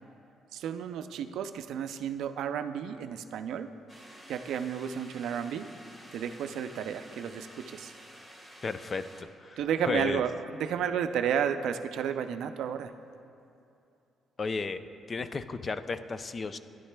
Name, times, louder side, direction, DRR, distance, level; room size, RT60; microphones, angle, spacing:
voice 1, 0.5-3.7 4.3-5.7 6.1-7.9 9.6-10.3 10.6-12.9, right 8 dB, 80° right, 9 dB, 0.4 m, -32 dB
sound 1, 3.9-9.2, equal, 20° left, 1.4 m, -51 dB
voice 2, 8.6-9.0 9.4-9.6 9.9-10.2 14.4-14.8 15.1-16.6, left 4 dB, 35° left, 12 dB, 0.4 m, -33 dB
13.5 x 10.5 x 2.2 m, 2.7 s
cardioid pair, 90°, 0 cm